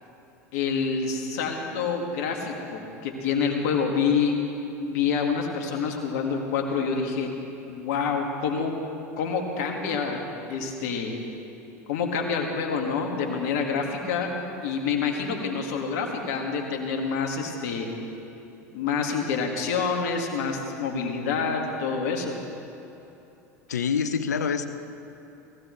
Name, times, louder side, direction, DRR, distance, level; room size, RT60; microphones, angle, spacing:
voice 1, 0.5-4.3 4.8-7.3 7.7-8.7 9.2-10.2 10.5-11.1 11.9-14.3 14.6-17.9 18.7-22.3, left 5 dB, 70° left, 2 dB, 2.1 m, -27 dB
voice 2, 23.7-24.7, left 6 dB, 90° left, 10 dB, 0.7 m, -26 dB
18.5 x 15.5 x 3.3 m, 3.0 s
hypercardioid pair, 90°, 9 cm